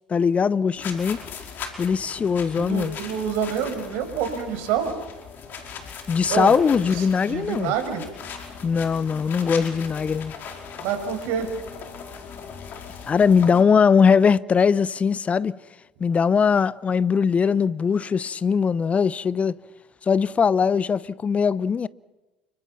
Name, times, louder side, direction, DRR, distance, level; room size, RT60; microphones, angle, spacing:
voice 1, 0.1-1.2 1.8-3.0 6.1-7.7 8.6-10.3 13.1-15.6 16.0-19.6 20.0-21.9, left 6 dB, 30° left, 0.9 m, -20 dB
sound 1, 0.7-13.6, left 6 dB, 45° left, 5.1 m, -39 dB
voice 2, 2.6-4.9 6.3-6.5 6.9-8.0 10.8-11.5, right 8 dB, 60° right, 5.6 m, -27 dB
29.5 x 25.5 x 5.9 m
figure-of-eight pair, 65°, 5 cm